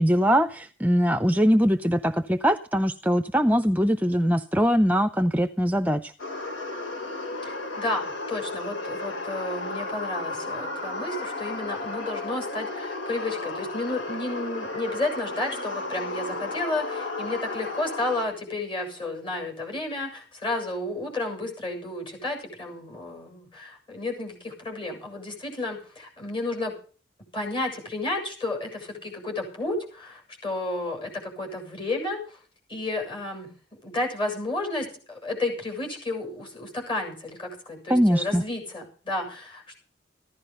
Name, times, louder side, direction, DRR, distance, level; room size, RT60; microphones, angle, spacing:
voice 1, 0.0-6.1 37.9-38.4, equal, 10° right, 9 dB, 0.6 m, -22 dB
sound 1, 6.2-18.3, left 2 dB, 90° left, 3.2 m, -33 dB
voice 2, 7.4-26.7 27.3-32.4 32.7-33.5 33.8-39.8, left 2 dB, 25° left, 2 dB, 7.5 m, -32 dB
15.5 x 12.0 x 5.6 m, 0.39 s
head